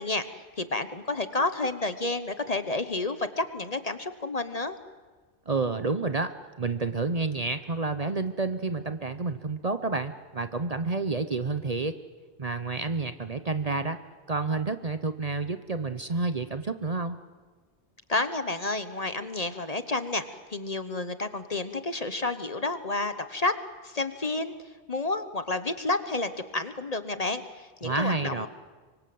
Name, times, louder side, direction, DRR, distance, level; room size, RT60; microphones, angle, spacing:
voice 1, 0.0-4.8 18.1-23.5 23.8-24.5 24.9-28.5, left 2 dB, 35° left, 10 dB, 1.1 m, -30 dB
voice 2, 5.5-6.3 6.6-12.0 12.4-14.0 14.3-17.2 27.8-28.5, right 3 dB, 35° right, 9 dB, 0.9 m, -29 dB
25.0 x 24.0 x 7.8 m, 1.4 s
omnidirectional pair, 1.2 m